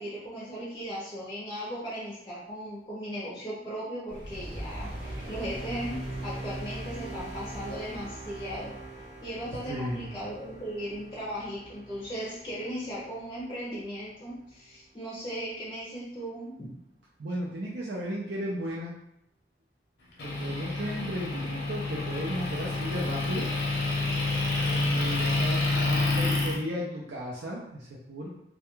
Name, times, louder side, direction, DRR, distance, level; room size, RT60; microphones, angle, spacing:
voice 1, 0.0-8.7 9.2-16.7, equal, 20° left, -7 dB, 0.5 m, -37 dB
sound 1, 4.1-14.5, right 1 dB, 30° right, 0.7 m, -41 dB
voice 2, 9.7-10.1 17.2-18.9 20.2-23.5 24.5-28.3, equal, 75° right, -4 dB, 0.4 m, -35 dB
Motor vehicle (road) / Engine, 20.2-26.6, left 2 dB, 75° left, 0.7 m, -28 dB
2.2 x 2.2 x 2.9 m, 0.78 s
head